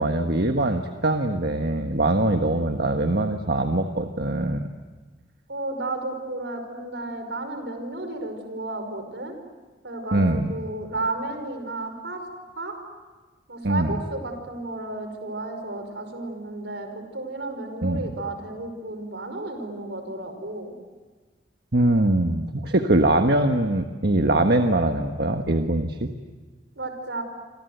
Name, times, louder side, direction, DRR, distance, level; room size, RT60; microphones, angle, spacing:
voice 1, 0.0-4.7 10.1-10.5 13.6-13.9 17.8-18.0 21.7-26.1, right 1 dB, 60° right, 5 dB, 1.4 m, -22 dB
voice 2, 5.5-9.3 9.8-12.2 12.6-12.8 13.5-20.7 26.8-27.2, right 2 dB, 80° right, 7 dB, 5.5 m, -33 dB
28.0 x 26.0 x 8.1 m, 1.3 s
head